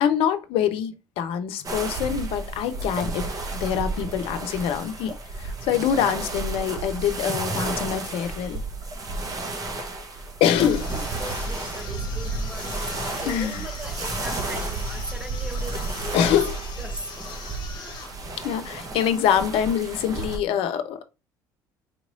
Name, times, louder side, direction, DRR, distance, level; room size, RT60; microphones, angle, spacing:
voice 1, 0.0-3.3 3.5-8.6 10.4-10.8 13.3-13.6 16.1-16.6 18.4-21.0, left 9 dB, 60° left, 0.6 m, -24 dB
sound 1, 1.6-20.4, right 3 dB, 35° right, 1.1 m, -32 dB
voice 2, 9.3-16.4 16.8-17.2 17.7-18.1, right 1 dB, 10° right, 1.0 m, -40 dB
sound 2, 10.4-18.2, left 5 dB, 45° left, 1.1 m, -41 dB
4.4 x 3.0 x 2.5 m
hypercardioid pair, 60°, 11 cm